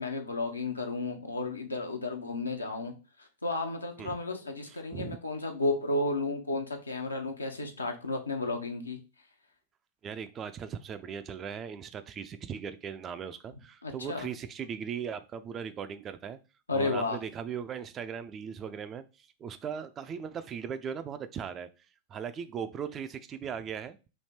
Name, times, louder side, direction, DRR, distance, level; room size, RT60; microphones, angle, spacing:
voice 1, 0.0-9.0 13.8-14.3 16.7-17.2, left 2 dB, 80° left, 0.7 m, -33 dB
voice 2, 4.7-5.2 10.0-16.4 16.7-21.7 22.1-24.0, right 7 dB, 25° right, 0.4 m, -38 dB
3.3 x 2.8 x 4.2 m
figure-of-eight pair, 90°, 0 cm